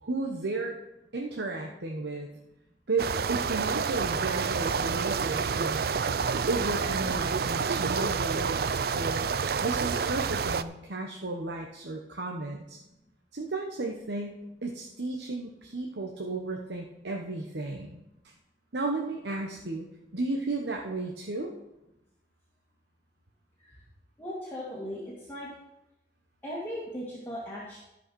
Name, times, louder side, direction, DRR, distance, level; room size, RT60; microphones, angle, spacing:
voice 1, 0.0-0.8 1.1-2.3 2.9-5.8 6.5-9.3 9.6-12.8 13.3-18.0 18.7-19.9 20.1-21.5, right 2 dB, 75° right, 1 dB, 1.1 m, -33 dB
sound 1, 3.0-10.6, right 5 dB, 55° right, 0.4 m, -29 dB
voice 2, 24.2-25.5 26.4-27.8, equal, 10° left, -7 dB, 2.1 m, -38 dB
13.5 x 5.5 x 6.2 m, 0.91 s
head